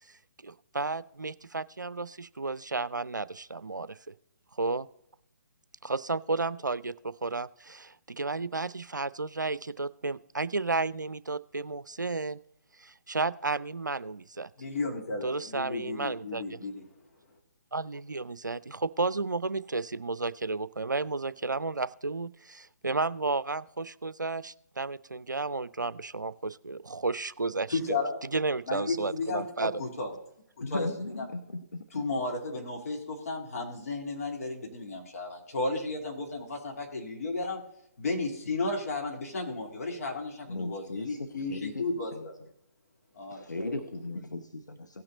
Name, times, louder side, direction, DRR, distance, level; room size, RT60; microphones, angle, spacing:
voice 1, 0.4-4.1 4.6-4.9 5.8-12.4 12.8-14.5 15.2-16.6 17.7-28.0 28.3-29.8, right 3 dB, 85° right, 17 dB, 0.4 m, -32 dB
voice 2, 14.6-16.8 27.7-28.1 28.7-30.1 30.7-30.9 31.2-31.3 31.9-37.6 38.0-42.3 43.2-43.7, left 3 dB, 50° left, 1 dB, 2.7 m, -33 dB
voice 3, 30.6-32.0 40.4-42.3 43.3-45.0, left 2 dB, 75° left, 10 dB, 0.8 m, -37 dB
16.5 x 5.8 x 3.9 m, 0.74 s
figure-of-eight pair, 135°, 10 cm